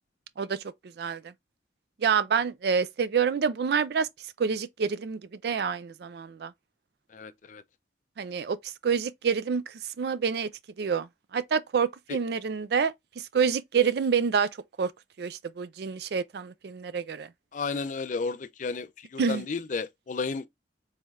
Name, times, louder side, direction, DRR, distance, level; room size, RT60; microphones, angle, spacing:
voice 1, 1.0-1.3 2.0-4.1 4.4-6.5 8.2-10.5 10.8-11.1 11.3-14.5 14.8-14.9 15.2-17.3 19.2-19.4, right 6 dB, 60° right, 0.4 m, -27 dB
voice 2, 7.1-7.6 12.1-12.2 17.5-20.5, left 4 dB, 45° left, 0.4 m, -33 dB
4.1 x 3.3 x 2.3 m
head